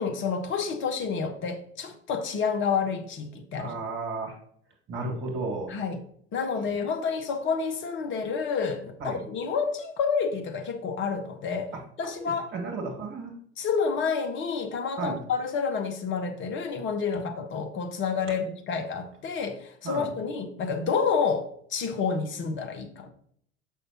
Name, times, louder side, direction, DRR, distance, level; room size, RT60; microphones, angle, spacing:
voice 1, 0.0-3.8 5.7-6.0 6.3-11.7 12.0-12.5 13.6-23.1, left 5 dB, 35° left, 1.0 m, -29 dB
voice 2, 3.6-4.4 4.9-5.7 9.0-9.2 12.2-13.4 15.0-15.2 17.1-17.3 18.3-18.4 19.8-20.1, right 3 dB, 35° right, 1.8 m, -33 dB
6.6 x 5.5 x 2.9 m
figure-of-eight pair, 75°, 33 cm